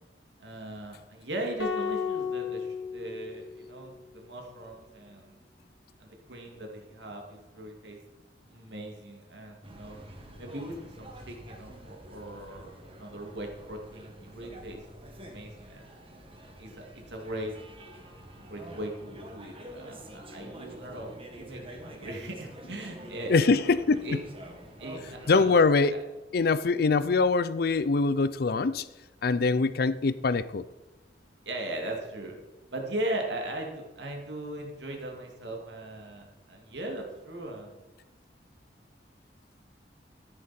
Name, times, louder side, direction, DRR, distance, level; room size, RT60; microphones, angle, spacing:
voice 1, 0.4-5.4 6.0-8.0 8.5-10.0 10.4-14.8 15.2-15.8 16.6-17.5 18.5-23.5 24.0-24.2 24.8-26.0 31.4-32.4 32.7-37.7, right 1 dB, 75° right, 2.5 m, -38 dB
sound 1, 1.6-3.9, left 6 dB, 90° left, 1.8 m, -34 dB
sound 2, 9.6-25.4, equal, 30° right, 1.8 m, -47 dB
voice 2, 23.3-24.1 25.3-26.0 26.3-28.8 29.2-30.6, left 4 dB, 60° left, 0.5 m, -23 dB
14.0 x 10.5 x 4.4 m
head